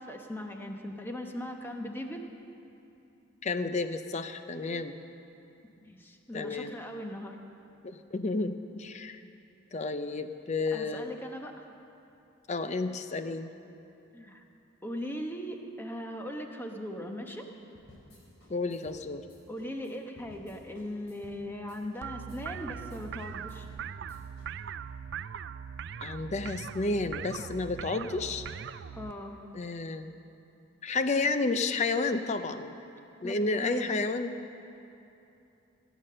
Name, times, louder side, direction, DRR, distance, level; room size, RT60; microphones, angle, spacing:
voice 1, 0.0-2.3 5.8-7.4 10.7-11.7 14.1-14.4 14.8-17.5 19.5-23.7 28.9-29.4 33.2-33.9, equal, 10° left, 3 dB, 0.9 m, -39 dB
voice 2, 3.4-5.0 6.3-6.7 7.8-9.2 9.7-11.1 12.5-13.5 18.5-19.2 26.0-28.5 29.5-30.2 30.8-32.7 33.2-34.4, left 3 dB, 35° left, 10 dB, 0.5 m, -31 dB
sound 1, 17.7-24.5, left 1 dB, 65° left, 3.5 m, -56 dB
sound 2, 22.0-29.1, right 7 dB, 55° right, 0.3 m, -40 dB
17.5 x 9.3 x 6.6 m, 2.8 s
head